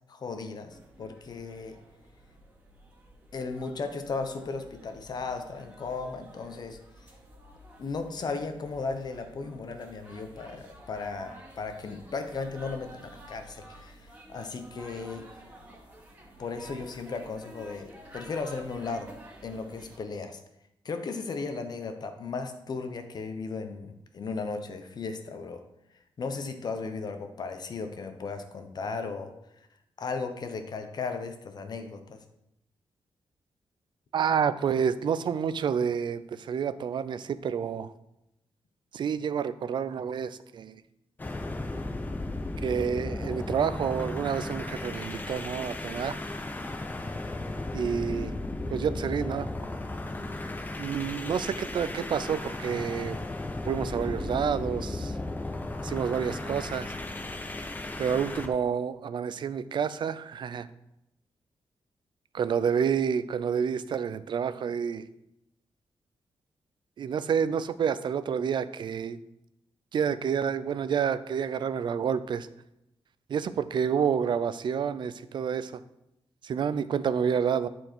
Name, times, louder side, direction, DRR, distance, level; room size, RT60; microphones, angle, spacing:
voice 1, 0.1-1.7 3.3-6.8 7.8-15.2 16.4-19.1 19.4-20.4 20.8-25.6 26.2-29.3 30.0-32.2, left 4 dB, 50° left, 7 dB, 0.9 m, -36 dB
sound 1, 0.7-20.0, right 1 dB, 15° right, 2.5 m, -51 dB
voice 2, 34.1-37.9 38.9-40.8 42.6-46.2 47.7-48.3 48.7-49.5 50.8-53.2 53.7-55.1 55.8-56.9 58.0-60.7 62.3-65.0 67.0-69.2 69.9-72.5 73.3-75.7 76.4-77.7, right 7 dB, 60° right, 14 dB, 0.5 m, -29 dB
sound 2, 41.2-58.5, left 2 dB, 20° left, 0.7 m, -35 dB
11.0 x 4.6 x 4.5 m, 0.85 s
wide cardioid pair, 140°, 9 cm